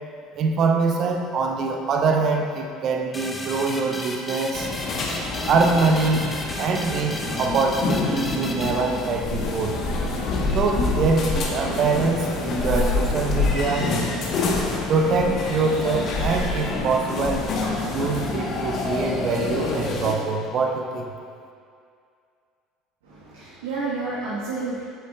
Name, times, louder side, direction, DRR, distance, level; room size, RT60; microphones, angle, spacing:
voice 1, 0.4-4.7 5.5-9.8 10.5-13.9 14.9-17.5 17.9-21.1, right 4 dB, 45° right, 2 dB, 0.6 m, -24 dB
sound 1, 3.1-9.5, left 1 dB, 15° left, 0.8 m, -34 dB
sound 2, 4.5-20.1, left 3 dB, 45° left, 1.0 m, -27 dB
voice 2, 23.0-24.8, right 3 dB, 70° right, -8 dB, 1.1 m, -30 dB
8.2 x 7.9 x 2.3 m, 2.3 s
figure-of-eight pair, 65°, 0 cm